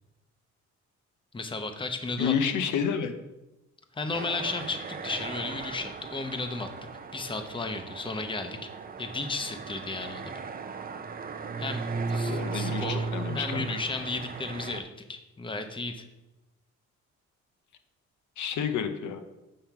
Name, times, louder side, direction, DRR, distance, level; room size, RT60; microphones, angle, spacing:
voice 1, 1.3-2.3 3.9-6.7 7.1-8.7 9.0-10.3 11.6-11.8 12.1-13.1 13.3-16.0, left 3 dB, 15° left, 7 dB, 0.8 m, -34 dB
voice 2, 2.2-3.1 12.2-13.6 18.4-19.2, left 7 dB, 80° left, 8 dB, 0.8 m, -29 dB
sound 1, 4.1-14.8, right 4 dB, 30° right, 0.5 m, -36 dB
7.7 x 3.4 x 5.8 m, 0.99 s
cardioid pair, 90°, 30 cm